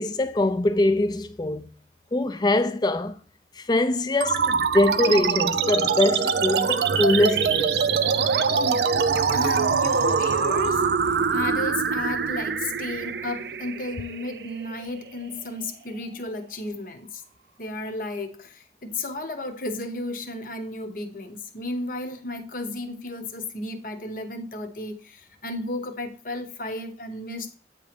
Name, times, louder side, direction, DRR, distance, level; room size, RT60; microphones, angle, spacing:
voice 1, 0.0-1.7 2.1-3.2 3.6-7.8, left 1 dB, 25° left, 0.4 m, -23 dB
sound 1, 4.2-15.2, right 6 dB, 65° right, 0.4 m, -24 dB
voice 2, 8.5-8.9 9.3-10.9 11.3-17.2 17.6-27.5, left 2 dB, 50° left, 0.9 m, -33 dB
8.5 x 3.0 x 5.0 m
head